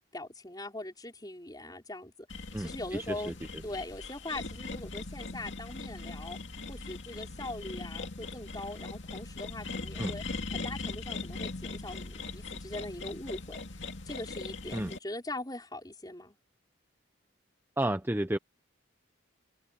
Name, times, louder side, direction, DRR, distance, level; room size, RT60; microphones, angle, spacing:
voice 1, 0.1-2.3 2.6-3.3 3.6-6.4 6.7-10.2 10.5-13.6 14.1-16.4, left 1 dB, 20° left, 5.4 m, -41 dB
sound 1, 2.3-15.0, left 3 dB, 60° left, 2.5 m, -40 dB
voice 2, 2.5-3.0 10.0-10.1 14.7-14.9 17.8-18.4, right 1 dB, 10° right, 0.7 m, -31 dB
head